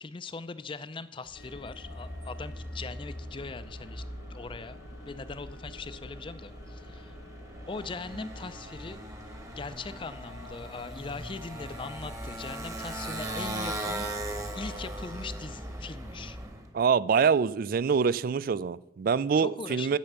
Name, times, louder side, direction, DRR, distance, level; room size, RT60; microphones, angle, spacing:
voice 1, 0.0-4.0 4.3-7.1 7.7-9.0 9.6-14.1 14.5-16.4 19.3-20.0, left 4 dB, 30° left, 14 dB, 0.4 m, -40 dB
Motorcycle, 1.3-16.7, right 1 dB, 20° right, 1.1 m, -39 dB
sound 1, 1.4-14.9, left 3 dB, 75° left, 0.8 m, -53 dB
voice 2, 16.7-20.0, right 6 dB, 50° right, 20 dB, 0.3 m, -25 dB
10.5 x 6.9 x 6.7 m, 0.92 s
head